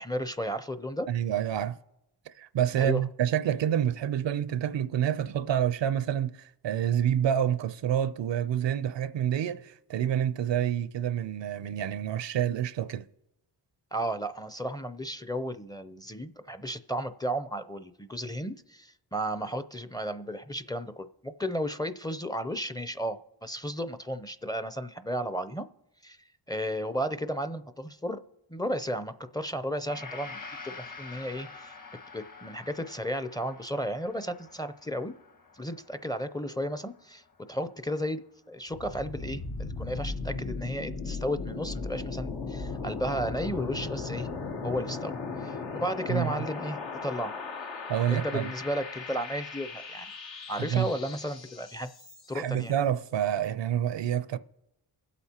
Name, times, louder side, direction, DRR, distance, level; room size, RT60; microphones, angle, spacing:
voice 1, 0.0-1.1 2.8-3.0 13.9-25.7 26.0-26.2 26.5-28.2 28.5-31.7 32.1-35.1 35.5-37.2 37.5-44.3 44.6-45.1 45.4-47.3 48.1-50.1 50.5-51.9 52.3-52.7, equal, 10° left, 0.5 m, -34 dB
voice 2, 1.1-1.8 2.3-13.1 46.1-46.3 47.9-48.5 50.6-50.9 52.3-54.4, right 10 dB, 75° right, 0.6 m, -28 dB
Gong, 29.8-38.2 38.6-38.8, left 4 dB, 45° left, 1.4 m, -48 dB
sound 1, 38.7-52.5, left 4 dB, 75° left, 1.1 m, -37 dB
24.0 x 8.2 x 2.9 m
cardioid pair, 60°, 44 cm